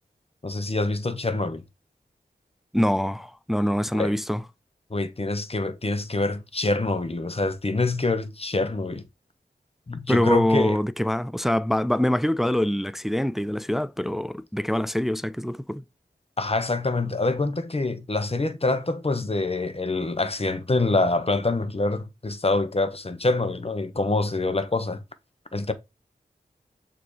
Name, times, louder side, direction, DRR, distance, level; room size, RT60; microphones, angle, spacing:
voice 1, 0.4-1.6 3.9-4.1 4.9-9.0 9.9-10.8 16.4-25.0 25.5-25.7, left 2 dB, 35° left, 1.0 m, -25 dB
voice 2, 2.7-4.4 10.1-15.8, left 1 dB, ahead, 0.4 m, -24 dB
6.8 x 3.0 x 4.8 m
cardioid pair, 45°, 17 cm